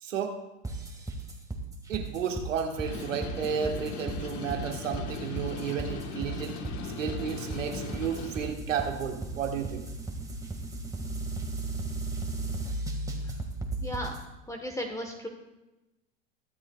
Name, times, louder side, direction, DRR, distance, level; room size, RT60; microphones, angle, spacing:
voice 1, 0.0-0.4 1.9-6.6 7.0-9.8, right 7 dB, 90° right, 3 dB, 1.6 m, -32 dB
sound 1, 0.6-14.2, right 2 dB, 10° right, 1.8 m, -35 dB
sound 2, 2.8-8.5, left 5 dB, 50° left, 1.4 m, -39 dB
voice 2, 13.8-14.1 14.5-15.3, equal, 10° left, 3 dB, 1.3 m, -35 dB
22.0 x 7.6 x 2.4 m, 1.0 s
hypercardioid pair, 85°, 37 cm